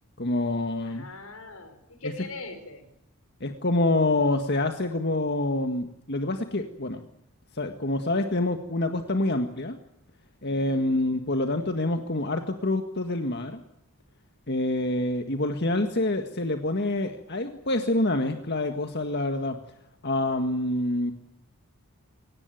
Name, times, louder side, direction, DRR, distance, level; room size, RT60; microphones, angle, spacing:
voice 1, 0.2-1.1 2.0-2.1 3.4-7.0 7.5-9.8 10.4-13.6 14.5-19.6 20.0-21.1, left 2 dB, 50° left, 6 dB, 1.8 m, -26 dB
voice 2, 0.8-2.9 10.4-11.1, left 3 dB, 85° left, 8 dB, 5.6 m, -41 dB
24.0 x 19.0 x 9.2 m, 0.83 s
head